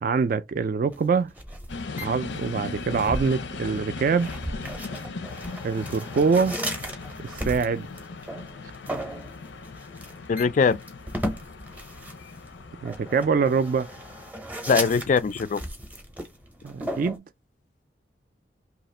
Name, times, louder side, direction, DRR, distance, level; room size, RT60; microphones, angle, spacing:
voice 1, 0.0-1.3 2.0-4.3 5.6-6.6 7.2-7.9 12.8-13.9 16.6-17.2, right 5 dB, 50° right, 0.3 m, -24 dB
sound 1, 0.9-17.2, equal, 10° right, 0.6 m, -36 dB
sound 2, 1.7-14.3, left 4 dB, 85° left, 0.6 m, -38 dB
voice 2, 10.3-10.8 14.7-15.6, left 5 dB, 45° left, 0.3 m, -21 dB
2.8 x 2.4 x 4.2 m
head